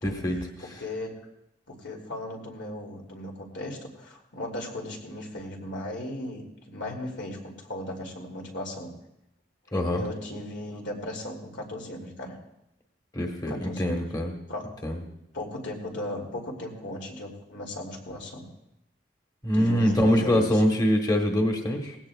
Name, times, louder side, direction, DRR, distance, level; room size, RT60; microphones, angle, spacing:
voice 1, 0.0-0.5 9.7-10.0 13.1-14.3 14.8-15.0 19.4-22.0, equal, 20° left, 2 dB, 1.3 m, -24 dB
voice 2, 0.6-1.1 1.7-8.9 9.9-12.4 13.5-14.1 14.5-14.7 15.3-18.5 19.5-20.6, left 1 dB, 80° left, 0 dB, 2.8 m, -36 dB
19.0 x 16.5 x 2.4 m, 0.84 s
head